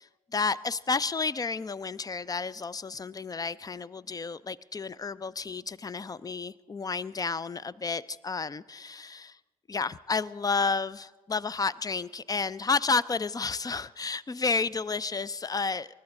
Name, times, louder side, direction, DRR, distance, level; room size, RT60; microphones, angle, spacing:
voice 1, 0.0-9.4 9.7-15.9, left 4 dB, 20° left, 21 dB, 0.5 m, -31 dB
29.0 x 12.5 x 3.7 m, 1.4 s
figure-of-eight pair, 50°, 20 cm